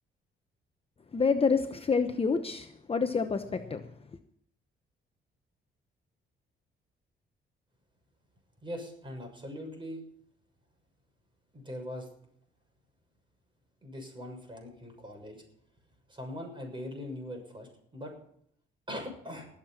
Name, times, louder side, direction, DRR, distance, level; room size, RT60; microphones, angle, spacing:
voice 1, 1.1-3.9, left 5 dB, 30° left, 7 dB, 0.9 m, -28 dB
voice 2, 8.6-10.0 11.5-12.1 13.8-15.4 16.1-18.1 18.9-19.5, left 1 dB, 25° right, 2 dB, 6.7 m, -41 dB
20.0 x 7.6 x 5.8 m, 0.67 s
cardioid pair, 90°, 20 cm